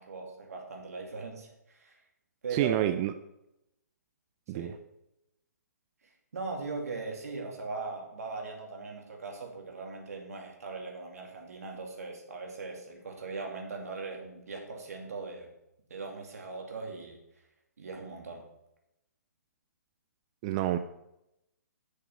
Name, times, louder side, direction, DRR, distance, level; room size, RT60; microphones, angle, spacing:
voice 1, 0.0-2.0 2.4-2.8 4.5-4.7 6.0-15.5 15.9-17.2 17.8-18.5, right 4 dB, 60° right, 1 dB, 2.5 m, -40 dB
voice 2, 2.5-3.1 4.5-4.7 20.4-20.8, right 13 dB, 25° right, 9 dB, 0.4 m, -28 dB
9.1 x 6.6 x 5.8 m, 0.86 s
figure-of-eight pair, 130°, 9 cm